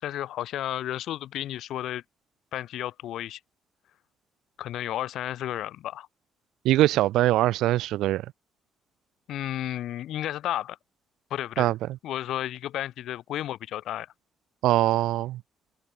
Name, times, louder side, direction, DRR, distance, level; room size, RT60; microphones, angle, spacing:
voice 1, 0.0-2.0 2.5-3.4 4.6-6.1 9.3-10.8 11.3-11.7 12.0-14.1, left 12 dB, 80° left, 3.0 m, -32 dB
voice 2, 6.6-8.2 11.6-11.8 14.6-15.4, right 15 dB, 90° right, 2.0 m, -22 dB
cardioid pair, 90°, 0 cm